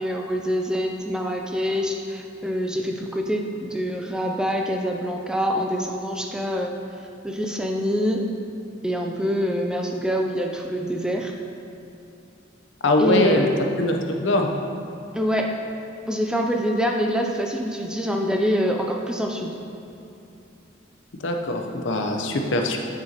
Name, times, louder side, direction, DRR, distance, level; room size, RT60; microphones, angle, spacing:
voice 1, 0.0-6.8 7.2-8.3 8.8-11.3 13.0-13.9 15.1-15.5 16.1-19.6, equal, 5° right, 2 dB, 0.4 m, -25 dB
voice 2, 12.8-13.5 13.8-14.5 21.2-22.8, left 2 dB, 65° left, 3 dB, 0.7 m, -22 dB
8.8 x 6.8 x 2.9 m, 2.7 s
head